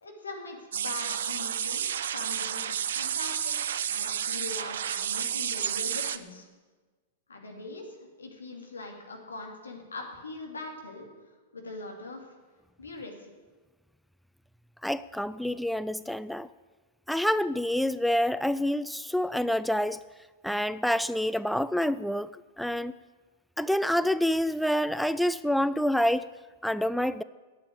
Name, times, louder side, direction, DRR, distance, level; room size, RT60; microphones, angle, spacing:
voice 1, 0.0-1.9 2.1-6.5 7.3-11.1 11.5-12.3 12.8-13.3, left 3 dB, 80° left, 2 dB, 2.5 m, -42 dB
sound 1, 0.7-6.2, right 9 dB, 65° right, 0.6 m, -31 dB
voice 2, 14.8-16.5 17.1-20.0 20.4-22.9 23.6-26.3 26.6-27.2, left 1 dB, ahead, 15 dB, 0.3 m, -27 dB
9.0 x 8.6 x 9.5 m, 1.3 s
figure-of-eight pair, 100°, 0 cm